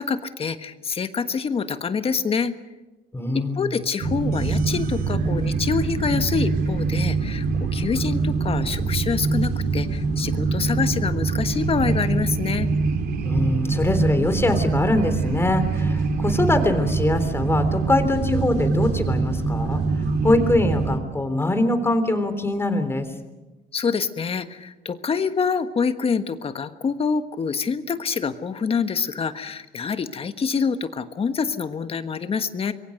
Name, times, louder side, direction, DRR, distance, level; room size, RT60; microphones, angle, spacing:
voice 1, 0.0-2.5 3.3-7.5 7.7-12.7 23.7-32.7, left 5 dB, 35° left, 10 dB, 1.4 m, -26 dB
voice 2, 3.1-3.8 13.2-19.8 20.2-23.1, left 2 dB, 15° left, 9 dB, 3.3 m, -23 dB
sound 1, 4.0-21.0, right 4 dB, 70° right, 3.7 m, -24 dB
26.0 x 22.5 x 6.6 m, 1.1 s
cardioid pair, 110°, 17 cm